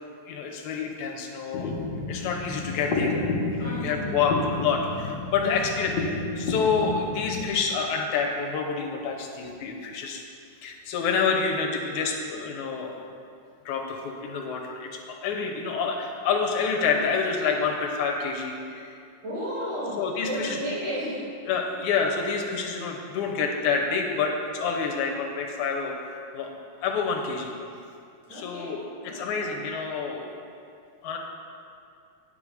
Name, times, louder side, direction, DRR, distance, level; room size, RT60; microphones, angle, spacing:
voice 1, 0.3-1.8 2.1-3.2 3.5-10.2 10.6-13.0 13.7-19.0 20.0-20.6 21.5-27.5 28.3-30.3 31.0-31.2, left 5 dB, 85° left, 1 dB, 2.3 m, -28 dB
sound 1, 1.5-7.5, left 3 dB, 70° left, 1.9 m, -30 dB
voice 2, 3.6-4.2 5.4-5.6 19.2-21.3 28.3-29.5, equal, 60° right, -8 dB, 3.6 m, -34 dB
9.5 x 5.0 x 6.8 m, 2.4 s
omnidirectional pair, 3.4 m